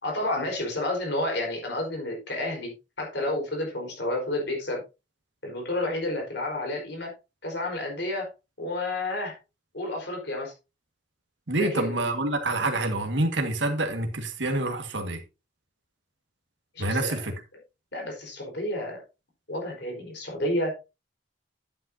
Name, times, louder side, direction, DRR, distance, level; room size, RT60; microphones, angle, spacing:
voice 1, 0.0-2.7 3.0-4.8 5.4-7.1 7.4-8.3 8.6-9.4 9.7-10.5 11.5-12.0 16.7-17.3 17.9-19.0 19.5-20.7, left 1 dB, 65° left, 4.4 m, -30 dB
voice 2, 11.5-15.2 16.8-17.3, right 2 dB, 80° right, 1.8 m, -27 dB
11.0 x 9.2 x 2.8 m
head